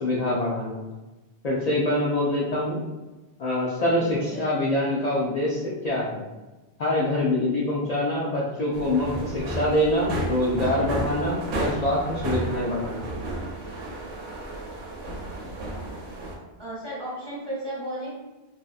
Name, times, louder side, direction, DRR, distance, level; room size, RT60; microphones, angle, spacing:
voice 1, 0.0-0.8 1.4-2.8 3.4-6.2 6.8-13.1, left 1 dB, 55° left, -5 dB, 0.5 m, -25 dB
voice 2, 3.8-4.4 16.6-18.1, right 1 dB, 25° right, -8 dB, 0.9 m, -34 dB
sound 1, 8.7-16.4, right 2 dB, 90° right, 0.9 m, -32 dB
2.7 x 2.3 x 2.4 m, 1.1 s
omnidirectional pair, 1.1 m